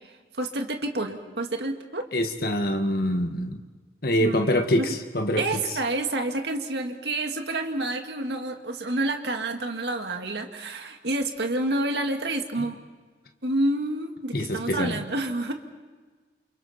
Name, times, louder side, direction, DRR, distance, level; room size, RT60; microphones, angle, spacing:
voice 1, 0.4-2.1 4.2-4.9 5.4-12.8 13.4-15.5, right 2 dB, 70° right, 4 dB, 2.1 m, -28 dB
voice 2, 2.1-3.6 4.0-5.4 12.6-12.7 14.3-15.0, equal, 55° left, 5 dB, 1.7 m, -25 dB
29.0 x 28.5 x 4.4 m, 1.4 s
head